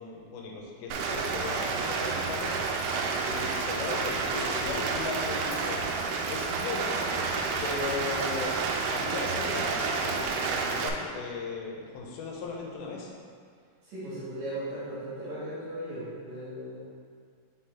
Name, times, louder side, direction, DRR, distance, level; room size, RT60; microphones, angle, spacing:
voice 1, 0.0-2.6 3.2-5.8 6.3-6.9 7.6-8.6 8.9-13.1, left 4 dB, 85° left, -1 dB, 2.6 m, -37 dB
Rain, 0.9-10.9, right 4 dB, 90° right, 2.5 m, -30 dB
voice 2, 13.8-17.0, right 1 dB, 65° right, -10 dB, 2.0 m, -37 dB
5.9 x 3.8 x 4.2 m, 2.1 s
omnidirectional pair, 4.3 m